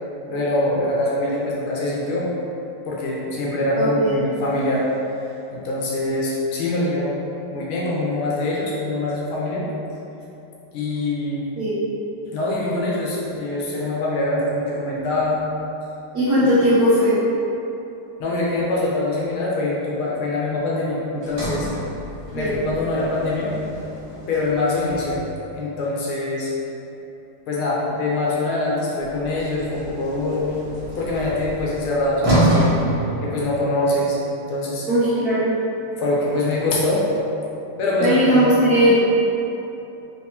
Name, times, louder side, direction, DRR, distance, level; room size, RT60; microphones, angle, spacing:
voice 1, 0.3-2.3 2.9-4.9 5.5-7.2 7.5-9.7 10.7-11.5 12.3-15.4 18.2-21.7 22.3-23.6 24.1-25.2 25.5-26.5 27.5-30.6 31.0-34.2 34.5-34.9 35.9-37.1 37.8-38.5, left 2 dB, 75° left, -5 dB, 1.6 m, -24 dB
voice 2, 3.8-4.2 11.6-11.8 16.1-17.2 22.3-22.5 34.9-35.6 38.0-39.0, equal, 65° right, -11 dB, 1.0 m, -18 dB
Sliding door, 21.2-25.5 29.0-33.9, right 1 dB, 20° right, 0.9 m, -27 dB
3.8 x 3.5 x 2.8 m, 3.0 s
omnidirectional pair, 2.4 m